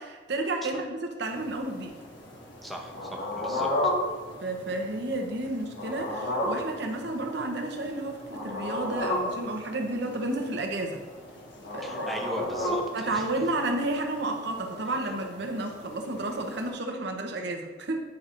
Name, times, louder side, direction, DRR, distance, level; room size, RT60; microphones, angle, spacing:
voice 1, 0.0-1.9 4.4-11.0 11.7-12.1 12.9-18.0, right 2 dB, 60° right, 4 dB, 0.8 m, -31 dB
sound 1, 1.3-16.7, left 1 dB, 65° left, 1.5 m, -35 dB
voice 2, 2.6-3.9 11.8-13.4, equal, ahead, 1 dB, 0.7 m, -39 dB
9.5 x 5.9 x 2.6 m, 1.3 s
head